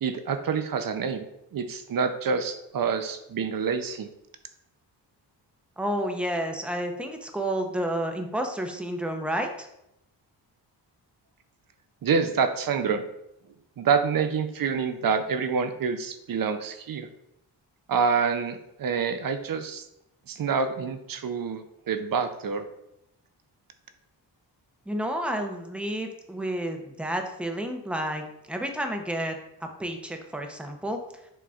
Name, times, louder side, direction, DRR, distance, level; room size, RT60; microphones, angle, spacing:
voice 1, 0.0-1.3 1.5-4.1 12.0-13.0 13.8-17.1 17.9-19.9 20.3-22.7, right 6 dB, 50° right, 9 dB, 0.5 m, -27 dB
voice 2, 5.8-9.7 24.9-29.4 29.6-31.0, right 1 dB, 5° right, 4 dB, 0.6 m, -30 dB
6.0 x 3.1 x 2.4 m, 0.83 s
cardioid pair, 60°, 44 cm